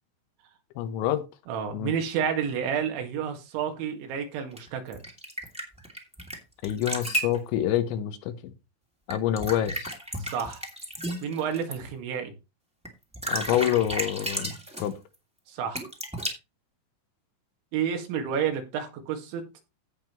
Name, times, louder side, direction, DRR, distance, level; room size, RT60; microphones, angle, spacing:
voice 1, 0.8-1.2 1.7-1.9 6.6-8.5 9.1-9.9 13.3-14.9, left 11 dB, 90° left, 3.4 m, -27 dB
voice 2, 1.5-5.0 10.2-10.6 11.2-12.4 15.5-15.8 17.7-19.4, right 7 dB, 85° right, 4.2 m, -30 dB
sound 1, 4.6-6.4 6.6-7.4 9.1-11.7 12.8-12.9 13.1-14.9 15.7-16.3, right 1 dB, 5° right, 1.0 m, -33 dB
16.5 x 5.6 x 3.0 m
omnidirectional pair, 5.2 m